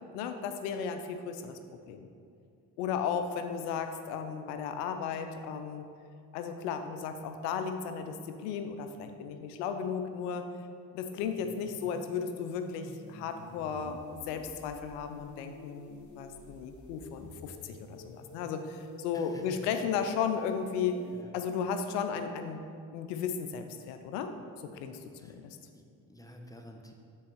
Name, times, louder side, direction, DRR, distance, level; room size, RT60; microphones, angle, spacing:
voice 1, 0.1-1.6 1.9-2.1 2.8-5.9 6.3-10.5 10.9-21.0 21.3-22.6 22.9-24.3 24.7-25.6, left 7 dB, 85° left, 7 dB, 0.6 m, -35 dB
sound 1, 11.2-21.2, left 2 dB, 40° left, 1.2 m, -50 dB
voice 2, 19.1-19.6 21.1-21.3 25.2-25.4 25.7-26.9, left 1 dB, 5° left, 2 dB, 1.0 m, -50 dB
7.5 x 3.9 x 5.8 m, 2.4 s
hypercardioid pair, 45°, 47 cm